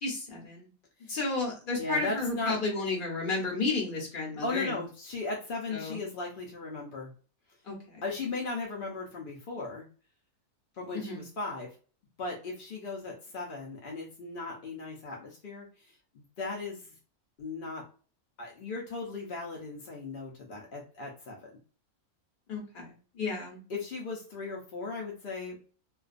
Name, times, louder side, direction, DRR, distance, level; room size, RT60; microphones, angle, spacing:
voice 1, 0.0-0.7 1.1-4.8 5.7-6.0 7.7-8.0 10.9-11.3 22.5-23.6, left 3 dB, 45° left, -2 dB, 0.9 m, -32 dB
voice 2, 1.8-2.6 4.4-7.1 8.0-9.8 10.7-11.7 12.2-16.9 17.4-17.8 18.4-21.5 23.7-25.6, left 3 dB, 60° left, -2 dB, 0.5 m, -37 dB
2.4 x 2.2 x 2.4 m, 0.38 s
omnidirectional pair, 1.5 m